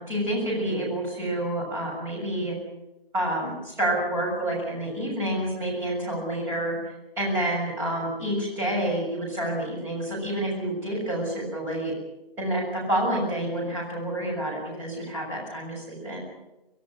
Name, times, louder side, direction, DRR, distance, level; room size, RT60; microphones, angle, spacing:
voice 1, 0.0-2.6 3.1-11.9 12.4-16.2, right 1 dB, 5° right, -5 dB, 6.8 m, -28 dB
25.5 x 15.5 x 9.9 m, 0.96 s
hypercardioid pair, 170°, 30 cm